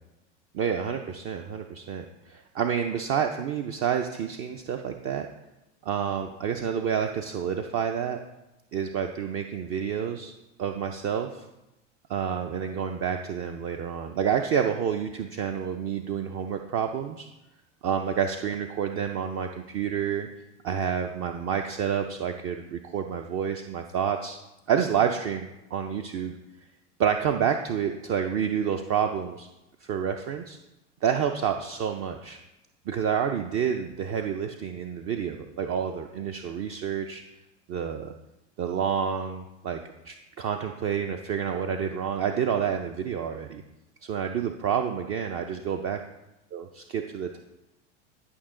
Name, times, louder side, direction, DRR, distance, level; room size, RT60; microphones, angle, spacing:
voice 1, 0.5-5.3 5.8-8.2 8.7-10.3 10.6-11.4 12.1-17.3 17.8-20.3 20.6-24.4 24.7-26.3 27.0-29.5 29.8-30.6 31.0-32.4 32.9-37.2 37.7-38.1 38.6-39.8 40.0-43.6 44.0-46.0 46.5-47.4, right 8 dB, 40° right, 5 dB, 0.7 m, -29 dB
11.0 x 5.6 x 3.8 m, 0.96 s
hypercardioid pair, 105°, 36 cm